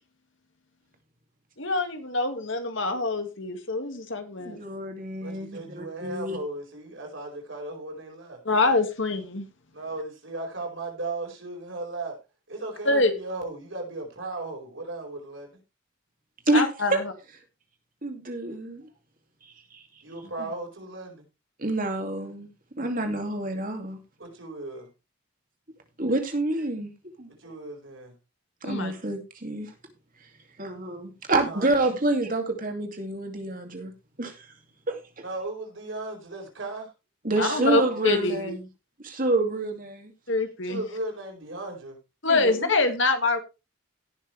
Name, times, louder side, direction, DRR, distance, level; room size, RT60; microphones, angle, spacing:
voice 1, 1.6-4.6 8.5-9.5 12.9-13.1 16.5-17.1 28.6-28.9 37.4-38.5 40.3-40.8 42.2-43.4, left 3 dB, 60° left, 7 dB, 2.0 m, -25 dB
voice 2, 4.4-6.4 16.5-16.6 16.9-17.0 18.0-18.8 19.7-19.8 20.4-20.5 21.6-22.5 22.8-24.0 26.0-26.9 27.2-27.3 28.6-29.7 30.6-33.9 34.2-34.5 34.9-35.0 37.2-38.6 39.0-40.1 42.3-42.7, right 2 dB, 40° right, 4 dB, 2.5 m, -28 dB
voice 3, 5.2-8.4 9.7-12.2 12.5-15.6 20.0-21.2 24.2-24.9 27.4-28.1 31.4-31.7 35.2-36.9 40.6-42.0, right 2 dB, 60° right, 2 dB, 4.9 m, -36 dB
17.5 x 6.7 x 3.3 m, 0.27 s
head